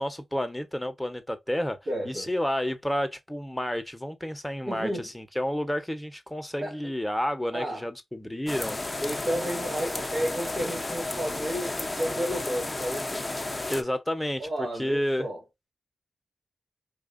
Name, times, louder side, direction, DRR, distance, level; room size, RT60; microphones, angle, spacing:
voice 1, 0.0-1.8 2.0-8.8 13.7-14.4 14.8-15.3, equal, 10° left, 1.2 m, -30 dB
voice 2, 1.9-2.3 4.6-5.1 6.6-6.8 7.5-7.9 9.0-13.3 14.4-15.4, equal, 65° right, 2.5 m, -32 dB
sound 1, 8.5-13.8, left 2 dB, 30° left, 0.9 m, -32 dB
4.8 x 2.7 x 2.6 m
cardioid pair, 45°, 0 cm